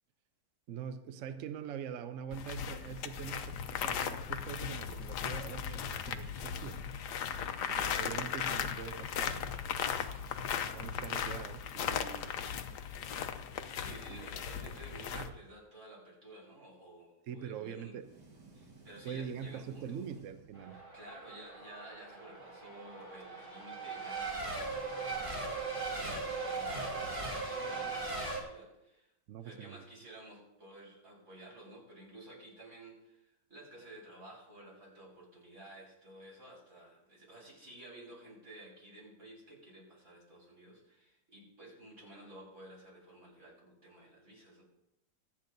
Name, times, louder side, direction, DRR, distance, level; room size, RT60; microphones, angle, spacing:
voice 1, 0.7-6.8 7.7-9.4 10.6-12.4 14.1-14.3 15.1-15.3 17.3-18.1 19.0-20.8 29.3-29.8, right 8 dB, 70° right, 9 dB, 0.7 m, -43 dB
sound 1, 2.3-15.3, left 8 dB, 70° left, 1.2 m, -37 dB
voice 2, 13.8-18.0 18.5-20.0 20.9-29.1 29.4-44.6, right 1 dB, 40° right, -5 dB, 5.3 m, -53 dB
sound 2, 18.0-21.1, right 3 dB, 55° right, 2.3 m, -57 dB
Race car auto racing / Accelerating revving vroom / Mechanisms, 20.5-28.4, right 3 dB, 15° right, 2.7 m, -39 dB
25.0 x 8.5 x 2.6 m, 0.89 s
omnidirectional pair, 2.0 m